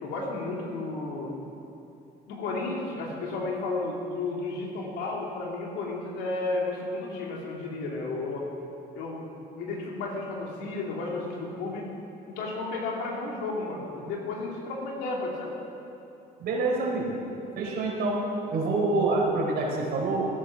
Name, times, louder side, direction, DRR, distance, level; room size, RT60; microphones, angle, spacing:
voice 1, 0.0-1.3 2.3-8.5 8.9-9.3 9.5-11.9 12.3-15.5, left 3 dB, 90° left, -2 dB, 2.8 m, -33 dB
voice 2, 16.4-17.1 17.6-18.2 18.5-20.3, right 3 dB, 70° right, -2 dB, 4.0 m, -26 dB
15.5 x 9.9 x 5.9 m, 2.7 s
cardioid pair, 110°, 17 cm